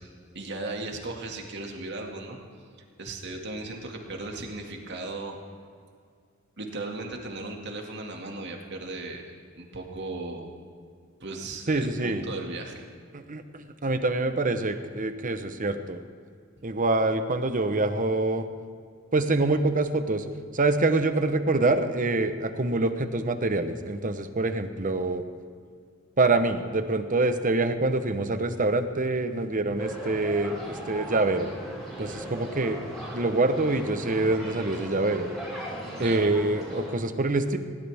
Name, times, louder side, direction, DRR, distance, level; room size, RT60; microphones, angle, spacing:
voice 1, 0.0-2.4 3.0-5.4 6.6-10.5 11.2-12.8 32.0-32.2 36.0-36.3, right 2 dB, 60° right, 2 dB, 2.2 m, -37 dB
voice 2, 11.7-12.2 13.1-16.0 16.6-18.5 19.1-20.3 20.5-25.2 26.2-31.5 32.0-32.8 33.1-35.3 36.0-37.6, right 2 dB, 40° right, 9 dB, 1.0 m, -25 dB
sound 1, 29.8-37.0, right 1 dB, ahead, 5.3 m, -38 dB
20.0 x 17.5 x 3.6 m, 2.2 s
head